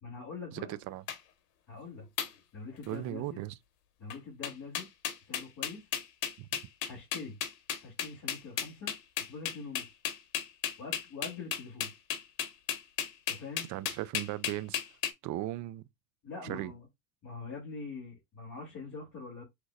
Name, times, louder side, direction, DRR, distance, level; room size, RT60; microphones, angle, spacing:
voice 1, 0.0-0.7 1.7-2.1 2.5-3.4 4.0-4.9 5.2-5.9 6.9-7.4 7.8-8.9 9.2-9.9 10.8-11.9 13.3-13.7 16.2-16.9 17.2-19.4, left 4 dB, 35° left, 2.6 m, -44 dB
voice 2, 0.5-1.0 2.9-3.6 6.4-6.5 13.7-14.8 15.2-15.8 16.4-16.7, right 15 dB, 40° right, 0.4 m, -37 dB
sound 1, 1.1-1.2 2.2-2.3 2.8-3.1 4.1-4.2 4.4-15.1, left 10 dB, 80° left, 1.3 m, -34 dB
6.4 x 3.0 x 2.4 m
supercardioid pair, 120°, 48 cm